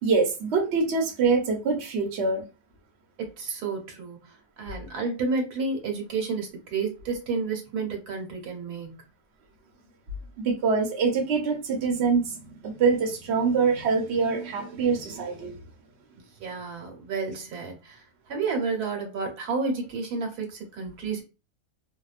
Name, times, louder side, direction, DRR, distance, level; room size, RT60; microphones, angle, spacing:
voice 1, 0.0-2.5 10.4-15.6, right 4 dB, 50° right, 0.9 m, -24 dB
voice 2, 3.2-9.0 16.4-21.2, right 4 dB, 75° right, 1.3 m, -31 dB
2.8 x 2.2 x 2.4 m
omnidirectional pair, 1.7 m